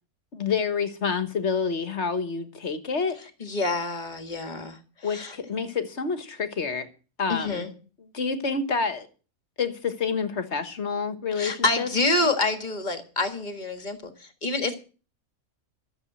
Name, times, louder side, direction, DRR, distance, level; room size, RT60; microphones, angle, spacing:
voice 1, 0.3-3.2 5.0-6.9 7.2-7.7 8.1-9.1 9.6-11.9, left 5 dB, 50° left, 1.6 m, -28 dB
voice 2, 3.4-5.4 7.3-7.7 11.4-14.8, left 2 dB, 30° left, 1.8 m, -27 dB
13.5 x 7.5 x 7.6 m
omnidirectional pair, 1.5 m